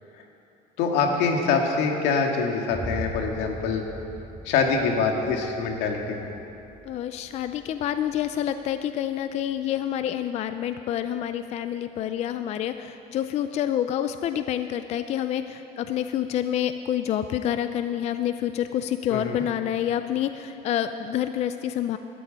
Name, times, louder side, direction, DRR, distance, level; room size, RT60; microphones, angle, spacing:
voice 1, 0.8-3.8 4.4-6.3 19.1-19.4, left 5 dB, 90° left, 2 dB, 1.9 m, -24 dB
Boom, 2.7-10.5, equal, 15° right, 2.3 m, -41 dB
voice 2, 6.8-22.0, left 10 dB, 40° left, 10 dB, 0.4 m, -28 dB
13.0 x 9.1 x 8.7 m, 2.8 s
cardioid pair, 170°, 17 cm